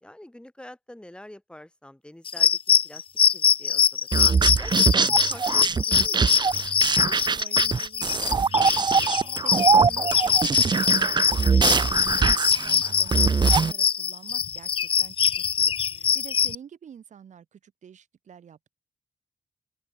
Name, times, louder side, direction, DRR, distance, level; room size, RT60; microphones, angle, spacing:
voice 1, 0.0-2.6 2.8-3.0 3.3-4.1 4.6-6.4 15.9-16.2, left 1 dB, 10° left, 3.0 m, -45 dB
sound 1, 2.3-16.6, left 7 dB, 45° left, 0.3 m, -23 dB
sound 2, 4.1-13.7, right 5 dB, 35° right, 0.5 m, -23 dB
voice 2, 7.0-8.9 9.2-18.6, right 8 dB, 80° right, 3.5 m, -48 dB
open air
cardioid pair, 70°, 12 cm